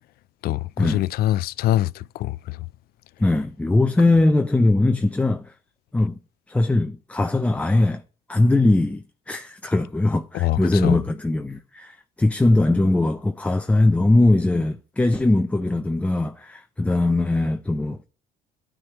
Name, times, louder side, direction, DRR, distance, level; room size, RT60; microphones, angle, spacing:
voice 1, 0.4-2.6 10.3-11.0, left 14 dB, 65° left, 0.4 m, -24 dB
voice 2, 3.2-5.5 5.9-6.1 6.5-8.0 8.3-18.1, left 2 dB, 10° left, 0.5 m, -20 dB
9.6 x 4.9 x 3.0 m
cardioid pair, 110°, 17 cm